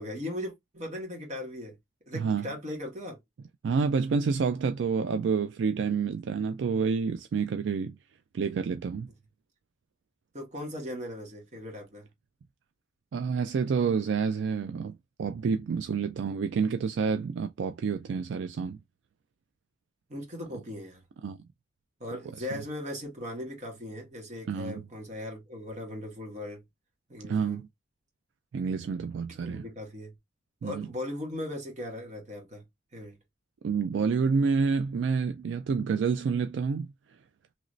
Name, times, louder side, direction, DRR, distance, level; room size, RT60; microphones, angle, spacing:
voice 1, 0.0-1.8 2.1-3.2 10.3-12.1 20.1-21.0 22.0-26.6 27.1-27.6 29.3-30.1 30.6-32.6 32.9-33.2, left 1 dB, 40° right, 1.3 m, -38 dB
voice 2, 2.1-2.4 3.6-8.0 8.3-9.1 13.1-14.9 15.2-18.8 21.2-21.4 24.5-24.8 27.2-27.7 28.5-29.7 30.6-30.9 33.6-36.9, right 5 dB, 70° right, 0.3 m, -28 dB
3.0 x 2.6 x 3.0 m
head